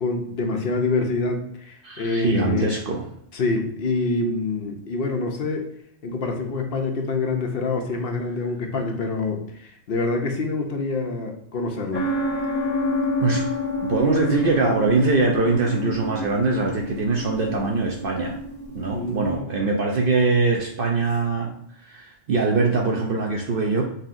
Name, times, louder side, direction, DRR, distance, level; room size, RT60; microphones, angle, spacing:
voice 1, 0.0-2.7 3.3-5.7 6.0-12.1 18.9-19.5, left 3 dB, 55° left, 2 dB, 0.9 m, -26 dB
voice 2, 1.8-3.0 13.2-13.4 13.8-18.4 18.7-21.5 21.8-23.8, right 3 dB, 60° right, -1 dB, 0.7 m, -22 dB
sound 1, 11.9-19.4, left 1 dB, 20° right, 1.4 m, -28 dB
5.4 x 2.8 x 2.5 m, 0.72 s
omnidirectional pair, 1.2 m